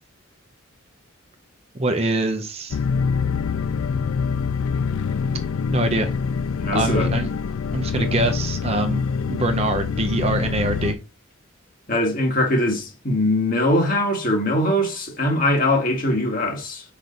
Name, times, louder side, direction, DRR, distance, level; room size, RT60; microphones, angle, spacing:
voice 1, 1.7-2.8 5.7-6.1 6.7-7.3 7.7-9.0 9.3-11.0, right 2 dB, 30° right, 0.7 m, -24 dB
sound 1, 2.7-10.9, left 5 dB, 80° left, 0.4 m, -25 dB
voice 2, 6.6-7.1 8.0-8.1 11.9-16.8, left 1 dB, 40° left, 1.9 m, -21 dB
6.1 x 5.0 x 4.0 m
head